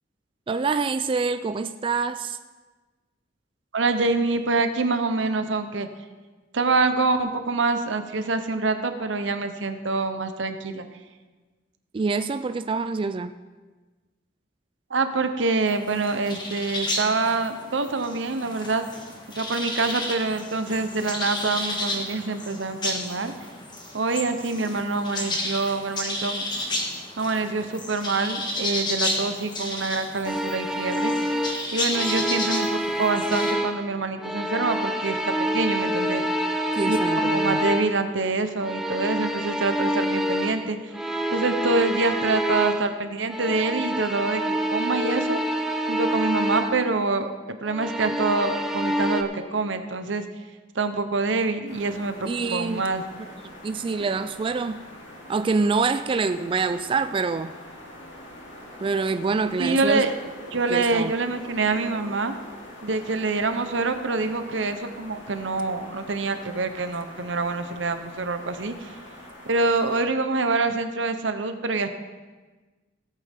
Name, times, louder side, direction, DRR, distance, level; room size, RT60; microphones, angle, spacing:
voice 1, 0.5-2.4 11.9-13.3 36.7-37.6 52.3-52.8 53.4-54.8 55.3-57.5 58.8-60.0 60.7-61.1, right 4 dB, 30° right, 10 dB, 0.3 m, -26 dB
voice 2, 3.7-5.9 6.5-10.9 14.9-18.8 19.3-23.3 23.9-26.4 27.2-31.1 31.7-36.2 36.8-40.8 41.3-44.4 44.7-45.4 45.9-50.2 50.7-53.0 54.0-54.1 59.6-60.2 60.5-62.3 62.8-69.0 69.5-71.9, right 3 dB, 85° right, 9 dB, 0.9 m, -26 dB
sound 1, 15.7-33.5, left 1 dB, 25° left, 1.6 m, -32 dB
sound 2, 30.2-33.9 34.2-38.1 38.6-43.0 43.3-46.9 47.7-49.2, equal, ahead, 0.7 m, -27 dB
sound 3, 51.7-70.0, left 1 dB, 85° left, 2.6 m, -44 dB
17.5 x 8.3 x 3.6 m, 1.3 s
head